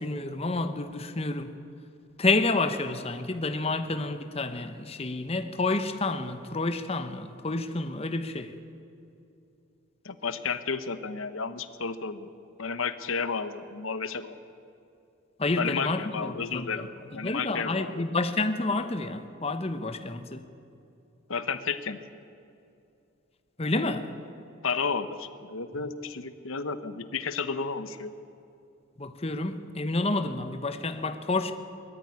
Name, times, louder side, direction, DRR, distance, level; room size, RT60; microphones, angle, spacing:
voice 1, 0.0-1.5 2.2-8.5 15.4-16.9 17.2-20.4 23.6-24.1 29.0-31.5, left 2 dB, 30° left, 9 dB, 1.0 m, -29 dB
voice 2, 10.0-12.3 12.6-14.4 15.6-18.0 21.3-22.0 24.6-28.1, left 5 dB, 75° left, 12 dB, 1.0 m, -32 dB
20.5 x 14.0 x 9.8 m, 2.6 s
head